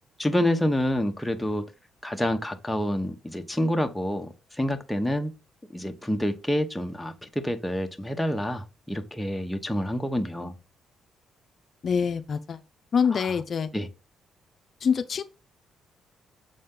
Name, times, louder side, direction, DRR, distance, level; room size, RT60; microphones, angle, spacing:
voice 1, 0.2-1.6 2.0-5.3 5.7-10.5 13.1-13.4 13.7-13.9, equal, 5° left, 1.0 m, -28 dB
voice 2, 11.8-12.6 12.9-13.7 14.8-15.2, left 6 dB, 50° left, 0.5 m, -25 dB
6.6 x 4.2 x 3.8 m
cardioid pair, 90°, 0 cm